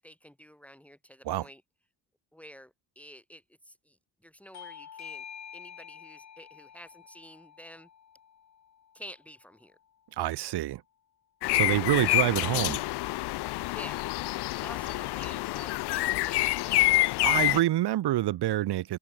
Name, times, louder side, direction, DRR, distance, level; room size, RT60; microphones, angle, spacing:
voice 1, 0.0-1.6 2.3-5.2 5.5-7.9 8.9-9.8 12.0-12.3 13.7-14.0 14.6-17.2, equal, 5° left, 4.8 m, -49 dB
Bell / Doorbell, 4.5-9.7, left 8 dB, 40° left, 2.0 m, -48 dB
voice 2, 10.2-10.8 11.5-12.8 17.2-19.0, right 14 dB, 70° right, 1.4 m, -27 dB
sound 1, 11.4-17.6, left 19 dB, 75° left, 0.5 m, -27 dB
cardioid pair, 105°, 41 cm